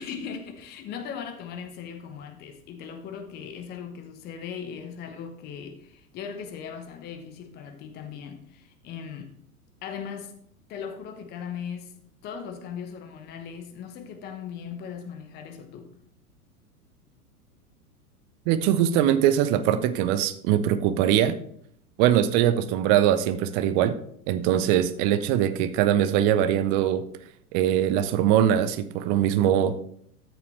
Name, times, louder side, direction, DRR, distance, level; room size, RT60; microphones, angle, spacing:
voice 1, 0.0-9.4 9.8-10.3 10.7-11.9 12.2-15.9, left 7 dB, 20° left, 0.9 m, -38 dB
voice 2, 18.5-21.4 22.0-23.9 24.3-27.0 27.5-29.7, right 10 dB, 20° right, 0.5 m, -22 dB
13.0 x 6.9 x 3.3 m
figure-of-eight pair, 95°, 45 cm